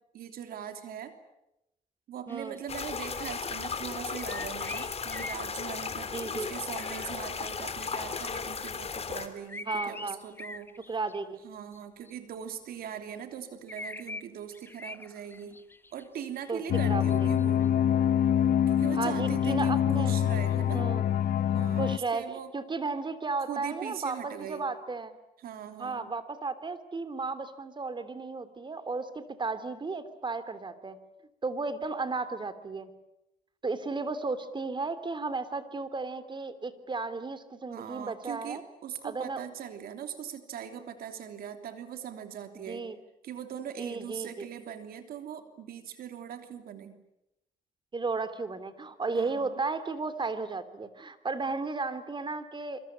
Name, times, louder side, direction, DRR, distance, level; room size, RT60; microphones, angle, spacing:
voice 1, 0.1-1.1 2.1-10.7 11.4-15.6 15.9-17.7 18.7-20.8 21.5-22.5 23.5-24.6 25.4-26.1 37.7-42.8 43.2-47.0 49.1-49.5, right 9 dB, 80° right, 7 dB, 3.1 m, -41 dB
sound 1, 2.3-3.3 4.2-5.4 5.8-5.9 6.8-7.6 9.5-11.3 11.7-11.8 12.1-12.2 13.7-14.2 14.5-16.2 17.1-17.7, left 2 dB, 15° left, 1.3 m, -42 dB
voice 2, 2.3-2.6 6.1-6.5 9.7-10.2 10.9-11.4 16.5-17.0 18.9-20.2 20.7-21.1 21.8-25.1 25.8-31.0 31.4-32.9 33.6-38.6 39.0-39.4 42.7-43.0 43.8-44.5 47.9-52.8, right 3 dB, 30° right, 12 dB, 3.0 m, -34 dB
sound 2, 2.7-9.3, left 5 dB, 40° left, 3.3 m, -35 dB
sound 3, 16.7-22.0, left 10 dB, 70° left, 1.0 m, -25 dB
26.5 x 25.0 x 8.7 m, 0.86 s
cardioid pair, 90°, 15 cm